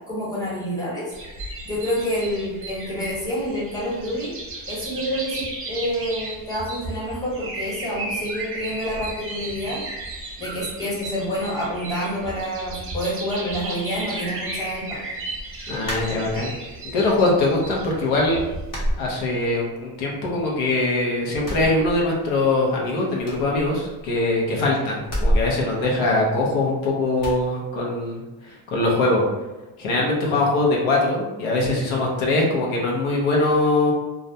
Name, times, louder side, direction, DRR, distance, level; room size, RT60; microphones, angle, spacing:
voice 1, 0.1-1.1 1.6-4.4 4.7-9.8 10.4-15.0, equal, 5° left, -7 dB, 1.0 m, -28 dB
sound 1, 1.1-18.7, right 2 dB, 30° right, 0.6 m, -35 dB
voice 2, 15.7-16.5 16.9-18.4 19.0-29.2 29.8-33.9, left 2 dB, 90° left, -2 dB, 0.8 m, -22 dB
sound 2, 15.8-16.7 17.1-17.8 18.1-18.2 18.7-19.8 20.1-20.9 21.3-22.5 22.7-22.8 23.2-24.3 25.0-26.7 27.2-27.5, equal, 40° left, 0.8 m, -29 dB
2.4 x 2.0 x 2.6 m, 1.1 s
cardioid pair, 110°, 48 cm